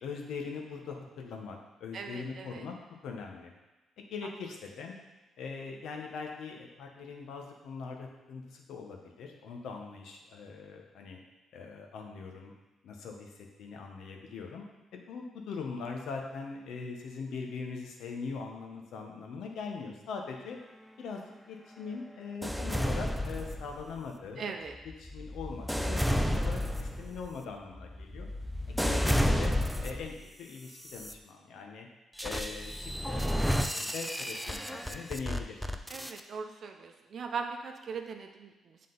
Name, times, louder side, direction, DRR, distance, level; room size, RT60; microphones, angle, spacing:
voice 1, 0.0-2.8 3.0-3.5 4.0-5.0 5.4-11.2 11.5-12.5 12.8-14.6 14.9-20.6 21.0-24.5 25.0-28.3 28.7-29.5 29.8-31.9 32.2-35.8, left 5 dB, 80° left, 2 dB, 0.9 m, -41 dB
voice 2, 1.9-2.7 24.4-24.7 35.9-38.8, right 5 dB, 55° right, 5 dB, 0.7 m, -40 dB
sound 1, 22.4-24.0 24.7-30.2 30.8-31.1 32.2-36.2, equal, ahead, 0.4 m, -31 dB
7.7 x 3.8 x 3.9 m, 1.1 s
cardioid pair, 90°, 0 cm